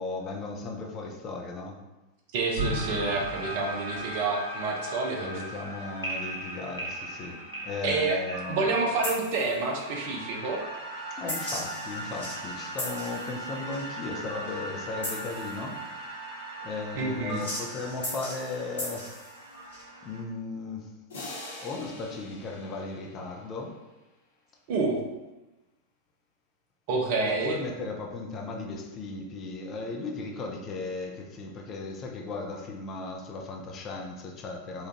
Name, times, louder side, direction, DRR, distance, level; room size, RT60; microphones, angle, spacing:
voice 1, 0.0-1.8 5.2-8.8 11.2-15.8 16.6-19.0 20.0-20.9 21.6-23.8 27.3-34.9, left 3 dB, 30° left, 1 dB, 0.6 m, -36 dB
voice 2, 2.3-5.3 7.8-8.2 8.5-10.6 17.0-17.5 24.7-25.0 26.9-27.6, right 3 dB, 50° right, 1 dB, 0.6 m, -28 dB
sound 1, 2.6-20.2, right 1 dB, 85° left, 1.4 m, -37 dB
sound 2, 21.1-23.8, left 2 dB, 65° left, 0.8 m, -44 dB
4.3 x 2.5 x 2.8 m, 1.0 s
figure-of-eight pair, 90°, 0 cm